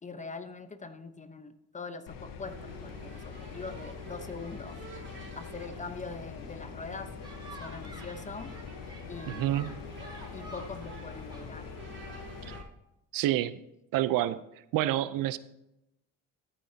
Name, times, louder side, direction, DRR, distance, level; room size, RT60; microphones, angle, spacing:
voice 1, 0.0-4.8 5.3-7.1 7.6-8.5 9.1-9.8 10.3-11.7, left 4 dB, 20° left, 10 dB, 1.0 m, -43 dB
sound 1, 2.1-12.6, left 7 dB, 80° left, 1.2 m, -44 dB
sound 2, 2.4-12.6, right 3 dB, 35° right, 3.3 m, -50 dB
sound 3, 7.2-12.3, right 1 dB, 15° right, 3.0 m, -50 dB
voice 2, 9.3-9.7 12.5-12.6 13.1-13.6 13.9-14.4 14.7-15.4, right 14 dB, 75° right, 15 dB, 0.6 m, -28 dB
13.5 x 8.9 x 2.8 m, 0.86 s
cardioid pair, 90°, 34 cm